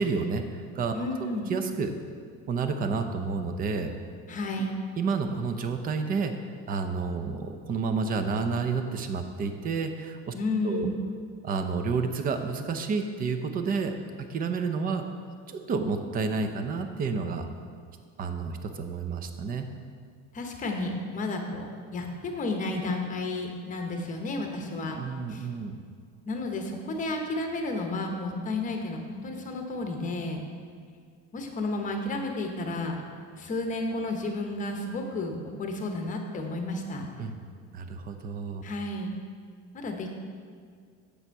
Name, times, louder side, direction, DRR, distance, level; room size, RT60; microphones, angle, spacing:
voice 1, 0.0-1.9 2.5-3.9 5.0-6.3 6.7-10.3 10.6-10.9 11.4-13.9 14.2-15.0 15.5-17.5 18.2-19.7 24.9-25.8 37.2-37.3 37.7-38.6, right 4 dB, 25° right, 7 dB, 0.5 m, -30 dB
voice 2, 0.9-1.5 4.3-4.8 10.3-11.0 20.3-24.9 25.3-25.5 26.3-30.4 31.3-33.0 33.3-37.1 38.6-39.1 39.7-40.1, left 2 dB, 25° left, 3 dB, 0.9 m, -32 dB
8.6 x 6.7 x 4.6 m, 2.1 s
cardioid pair, 160°, 33 cm